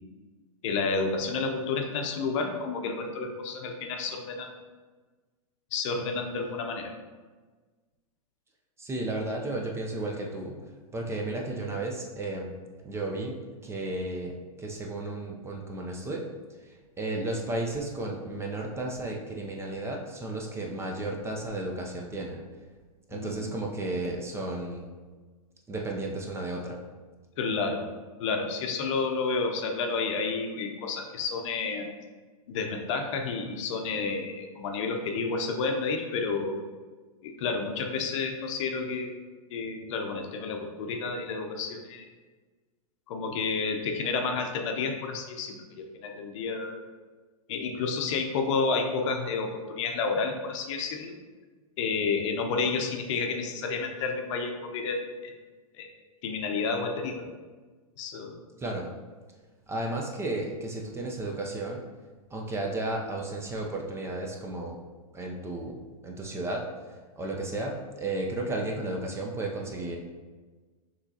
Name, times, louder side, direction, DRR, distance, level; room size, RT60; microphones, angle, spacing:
voice 1, 0.6-4.6 5.7-6.9 23.1-23.5 27.4-27.8 28.2-31.9 32.5-36.6 37.2-39.2 39.5-42.1 43.1-46.8 47.5-51.2 51.8-55.3 55.8-55.9 56.2-57.3 58.0-58.4, left 4 dB, 55° left, 4 dB, 0.7 m, -30 dB
voice 2, 8.8-10.6 10.9-12.5 12.8-16.2 17.0-22.4 23.1-24.9 25.7-26.8 58.6-58.9 59.7-61.8 62.3-64.8 65.1-65.8 66.0-66.7 67.2-70.0, right 2 dB, 15° right, 0 dB, 0.5 m, -33 dB
5.8 x 3.1 x 2.7 m, 1.4 s
hypercardioid pair, 110°, 19 cm